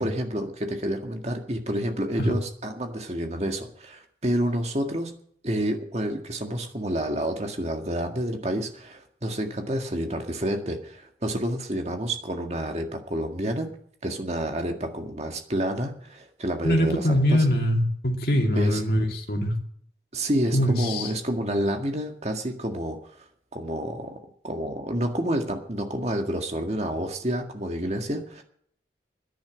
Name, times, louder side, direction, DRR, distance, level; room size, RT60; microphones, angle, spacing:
voice 1, 0.0-5.1 5.4-13.7 14.0-17.4 18.6-18.8 20.1-23.0 23.5-24.2 24.4-28.4, right 1 dB, 35° right, 4 dB, 1.9 m, -29 dB
voice 2, 16.6-19.5 20.5-21.1, equal, 60° left, 2 dB, 2.6 m, -23 dB
10.5 x 10.5 x 9.0 m, 0.64 s
head